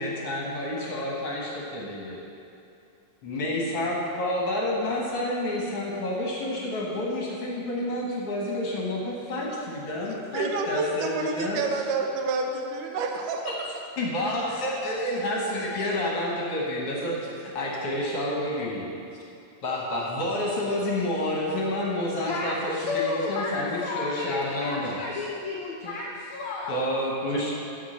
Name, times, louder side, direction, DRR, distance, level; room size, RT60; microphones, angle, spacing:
voice 1, 0.0-2.2 3.2-11.6 13.5-13.6 14.0-18.9 19.6-25.3 25.8-25.9 26.7-27.6, left 1 dB, 55° left, -3 dB, 1.7 m, -29 dB
voice 2, 10.3-13.7, right 3 dB, 70° right, 2 dB, 2.3 m, -29 dB
voice 3, 22.3-26.8, left 3 dB, 75° left, -1 dB, 1.7 m, -32 dB
9.2 x 7.7 x 6.5 m, 2.7 s
omnidirectional pair, 4.0 m